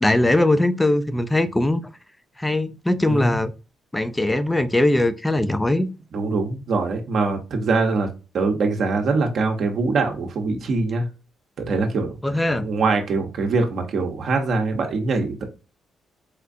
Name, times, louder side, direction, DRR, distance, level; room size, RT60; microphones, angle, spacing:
voice 1, 0.0-1.8 2.4-3.5 3.9-5.9 12.2-12.7, left 1 dB, 10° left, 0.4 m, -20 dB
voice 2, 3.1-3.4 6.1-8.1 8.3-11.1 11.6-12.1 12.6-15.5, right 3 dB, 60° right, 0.8 m, -23 dB
4.3 x 2.4 x 2.5 m
cardioid pair, 90°, 0 cm